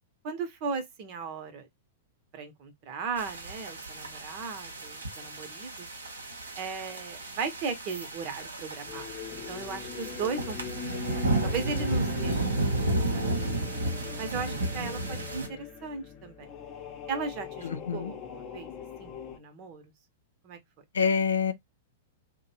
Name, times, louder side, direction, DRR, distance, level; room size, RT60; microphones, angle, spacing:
voice 1, 0.2-1.7 2.3-5.9 6.6-9.1 9.5-10.6 11.2-12.7 13.1-13.6 14.2-16.5 17.1-18.7 19.0-19.8 20.4-20.6, right 5 dB, 45° right, 0.8 m, -36 dB
sound 1, 3.2-15.5, right 2 dB, 80° right, 0.8 m, -33 dB
sound 2, 8.9-19.4, left 8 dB, 35° left, 0.7 m, -41 dB
voice 2, 17.6-18.1 20.9-21.5, left 6 dB, 75° left, 0.4 m, -26 dB
2.6 x 2.2 x 2.7 m
figure-of-eight pair, 105°, 0 cm